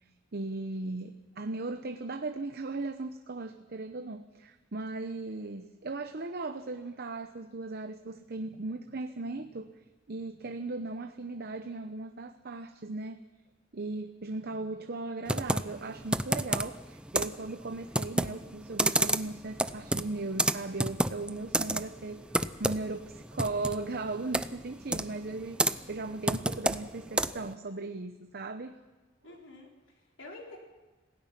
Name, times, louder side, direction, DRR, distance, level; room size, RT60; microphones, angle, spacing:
voice 1, 0.0-9.7 10.1-13.2 13.7-22.3 22.6-28.8 29.2-29.3, right 3 dB, 55° right, 7 dB, 0.8 m, -37 dB
Computer keyboard, 15.3-27.5, right 1 dB, 5° right, 0.6 m, -31 dB
voice 2, 29.2-30.6, left 2 dB, 75° left, -1 dB, 4.8 m, -49 dB
27.0 x 17.0 x 6.0 m, 1.2 s
head